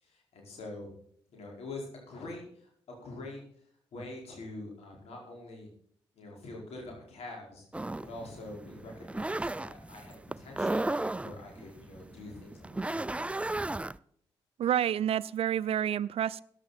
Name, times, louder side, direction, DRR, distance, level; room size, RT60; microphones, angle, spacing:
voice 1, 0.0-0.9 1.3-3.4 3.9-5.7 6.1-7.6 8.0-13.3, left 2 dB, 75° left, 4.9 m, -45 dB
sound 1, 7.7-14.0, right 2 dB, 10° right, 0.4 m, -35 dB
voice 2, 14.6-16.4, right 10 dB, 65° right, 0.5 m, -29 dB
14.5 x 10.5 x 4.2 m
supercardioid pair, 45°, 11 cm